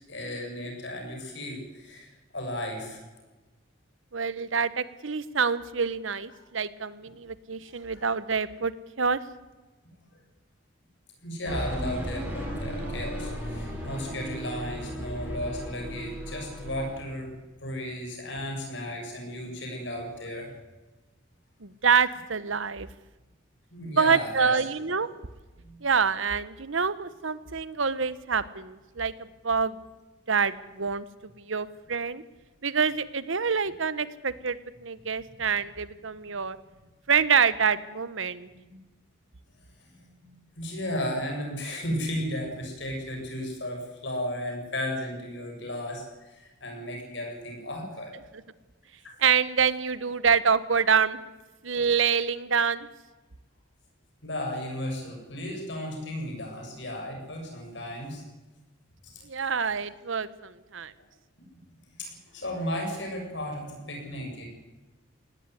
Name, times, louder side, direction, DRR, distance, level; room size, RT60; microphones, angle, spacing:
voice 1, 0.1-3.0 7.6-8.1 11.2-17.3 17.6-20.5 23.7-24.5 25.6-25.8 38.4-38.8 39.8-48.1 54.2-58.2 59.1-59.3 62.0-64.5, left 1 dB, 60° left, 1 dB, 7.9 m, -35 dB
voice 2, 4.1-8.7 9.0-9.2 21.6-22.9 23.9-25.1 25.8-29.1 29.4-29.8 30.3-31.1 31.4-32.2 32.6-36.6 37.1-38.5 49.2-51.2 51.6-52.9 59.3-60.9, right 6 dB, 75° right, 16 dB, 1.1 m, -26 dB
sound 1, 11.5-17.0, equal, 10° right, 7.8 m, -35 dB
18.5 x 16.5 x 9.8 m, 1.2 s
head